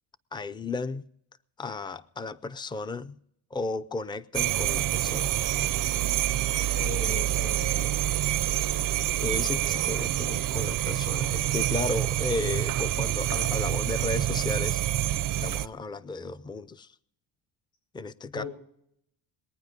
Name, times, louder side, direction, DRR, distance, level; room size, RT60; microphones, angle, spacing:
voice 1, 0.3-1.0 1.6-3.2 3.5-5.4 9.2-15.1 15.4-16.9 17.9-18.4, left 3 dB, 10° left, 0.4 m, -34 dB
sound 1, 4.3-15.7, right 13 dB, 50° right, 0.5 m, -27 dB
voice 2, 6.7-8.2 18.3-18.5, left 4 dB, 75° left, 7.0 m, -39 dB
21.5 x 9.3 x 5.2 m
cardioid pair, 115°, 41 cm